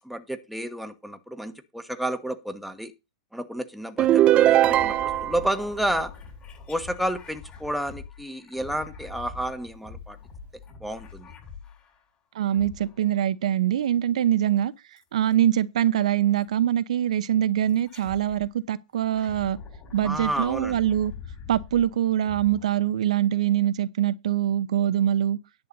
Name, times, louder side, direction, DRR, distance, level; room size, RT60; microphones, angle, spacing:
voice 1, 0.0-2.9 3.3-6.1 6.7-10.2 10.8-11.3 20.0-20.8, right 1 dB, ahead, 1.3 m, -31 dB
sound 1, 4.0-5.5, right 13 dB, 30° right, 0.5 m, -19 dB
sound 2, 4.6-12.1 12.5-13.3 15.0-15.4 16.4-16.5 17.7-18.5 18.9-23.3, left 5 dB, 30° left, 7.2 m, -44 dB
voice 2, 12.3-14.7 15.1-19.6 19.9-21.1 21.5-25.4, right 11 dB, 75° right, 0.8 m, -23 dB
10.5 x 8.2 x 4.0 m
hypercardioid pair, 120°, 4 cm